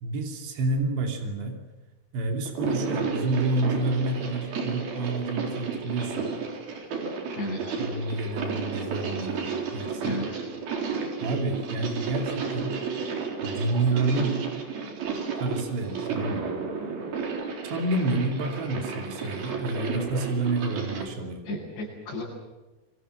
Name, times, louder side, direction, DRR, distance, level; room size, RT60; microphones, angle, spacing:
voice 1, 0.0-1.6 2.1-6.3 7.8-10.2 11.2-12.8 13.4-14.5 15.4-16.5 17.6-21.5, right 2 dB, 85° right, 3 dB, 5.1 m, -29 dB
sound 1, 2.5-21.1, right 5 dB, 60° right, 5.4 m, -32 dB
voice 2, 7.4-7.8 10.0-10.4 21.4-22.2, left 1 dB, 85° left, -8 dB, 10.0 m, -34 dB
29.0 x 23.5 x 7.7 m, 1.1 s
omnidirectional pair, 4.9 m